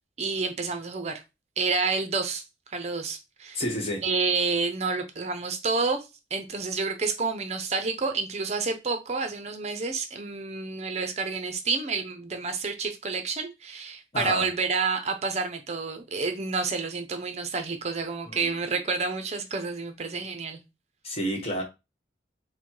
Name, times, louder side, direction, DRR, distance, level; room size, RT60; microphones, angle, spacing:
voice 1, 0.2-1.2 1.6-2.4 2.7-3.6 4.0-6.1 6.3-20.6, right 4 dB, 40° right, 0.6 m, -29 dB
voice 2, 3.5-4.0 14.1-14.5 18.3-18.5 21.0-21.6, equal, 35° left, 1.2 m, -30 dB
4.1 x 2.2 x 4.6 m
head